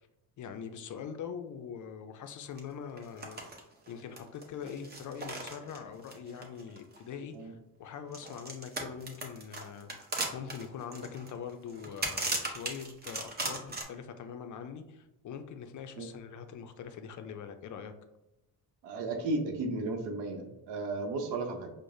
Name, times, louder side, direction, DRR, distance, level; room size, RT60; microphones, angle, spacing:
voice 1, 0.4-3.4 3.9-9.9 10.3-17.9, left 7 dB, 50° left, 0.4 m, -43 dB
sound 1, 2.6-2.7 3.0-3.6 3.9-7.1 8.1-13.8, right 2 dB, 25° right, 0.7 m, -37 dB
voice 2, 18.8-21.7, right 2 dB, 80° right, 0.8 m, -34 dB
4.7 x 2.1 x 2.6 m
cardioid pair, 90°, 41 cm